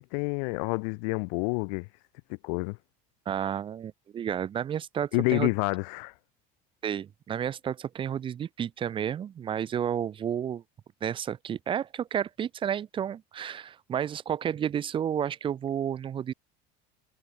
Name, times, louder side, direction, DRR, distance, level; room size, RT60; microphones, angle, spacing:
voice 1, 0.0-1.9 2.4-2.8 5.1-6.1, left 38 dB, 80° left, 2.7 m, -28 dB
voice 2, 3.2-5.5 6.8-10.6 11.0-16.3, right 9 dB, 25° right, 1.2 m, -31 dB
cardioid pair, 175°, 21 cm